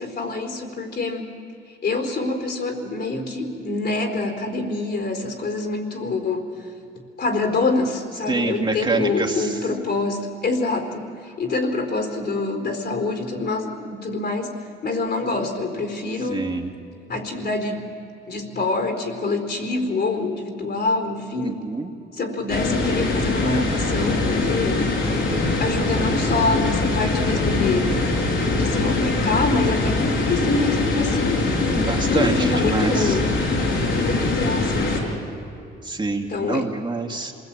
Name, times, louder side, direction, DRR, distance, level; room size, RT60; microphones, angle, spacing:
voice 1, 0.0-1.3 1.8-6.7 7.2-16.5 17.1-17.9 18.3-21.7 22.1-24.9 25.6-28.0 28.5-31.6 32.1-33.4 34.0-35.3 36.3-36.7, left 3 dB, 55° left, 4 dB, 4.3 m, -26 dB
voice 2, 8.3-9.5 16.3-16.7 21.4-21.9 31.7-33.2 35.8-37.3, right 3 dB, 25° right, 1 dB, 2.4 m, -26 dB
sound 1, 22.5-35.0, left 3 dB, 70° left, 6.1 m, -22 dB
27.0 x 20.5 x 9.0 m, 2.8 s
cardioid pair, 90°, 20 cm